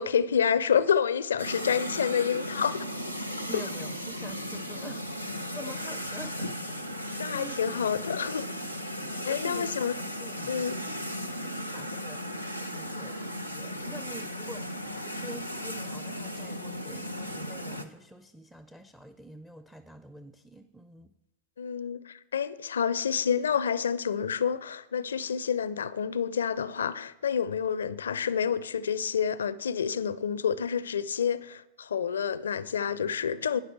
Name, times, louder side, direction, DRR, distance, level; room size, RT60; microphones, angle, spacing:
voice 1, 0.0-2.9 7.2-8.5 9.3-9.9 10.5-10.8 21.6-33.6, left 7 dB, 70° left, 0.5 m, -28 dB
sound 1, 1.4-17.8, equal, 90° right, 0.8 m, -36 dB
voice 2, 3.5-5.1 5.5-6.7 7.1-7.7 9.3-9.9 10.2-10.6 11.1-12.2 12.6-14.8 15.0-21.2, right 1 dB, 5° right, 0.5 m, -46 dB
12.0 x 9.8 x 4.6 m
figure-of-eight pair, 90°, 0 cm